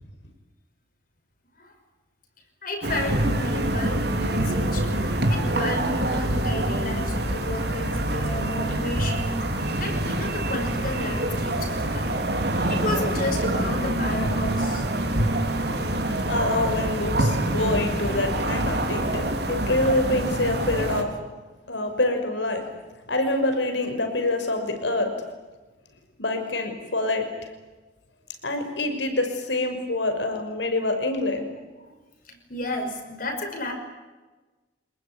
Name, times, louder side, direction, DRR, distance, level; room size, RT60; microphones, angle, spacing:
voice 1, 2.6-4.9 5.3-12.2 12.7-14.9 21.7-21.8 31.8-32.0 32.2-33.7, left 1 dB, 50° left, 4 dB, 6.0 m, -32 dB
Calle de noche en Santiago de Chile, 2.8-21.0, right 1 dB, 60° right, 3.9 m, -25 dB
voice 2, 16.3-21.2 21.7-22.7 23.1-25.1 26.2-27.5 28.4-31.5, left 2 dB, 75° left, 6 dB, 6.0 m, -26 dB
27.0 x 20.5 x 9.8 m, 1.2 s
head